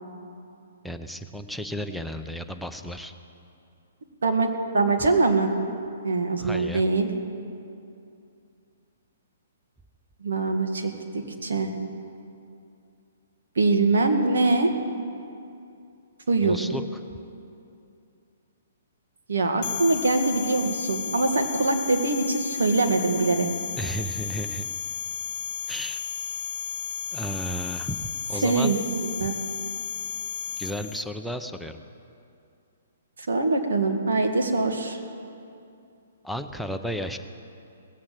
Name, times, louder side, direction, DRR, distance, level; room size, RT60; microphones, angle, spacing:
voice 1, 0.8-3.1 6.4-6.8 16.4-16.8 23.8-24.7 25.7-26.0 27.1-28.7 30.6-31.8 36.2-37.2, equal, ahead, 5 dB, 0.6 m, -33 dB
voice 2, 4.2-5.5 6.0-7.1 10.2-11.7 13.6-14.7 16.3-16.6 19.3-23.5 28.4-28.8 29.2-29.3 33.3-35.0, right 3 dB, 80° right, 4 dB, 1.9 m, -23 dB
sound 1, 19.6-31.0, left 9 dB, 40° left, 0.9 m, -33 dB
18.5 x 8.5 x 7.6 m, 2.6 s
hypercardioid pair, 145°, 0 cm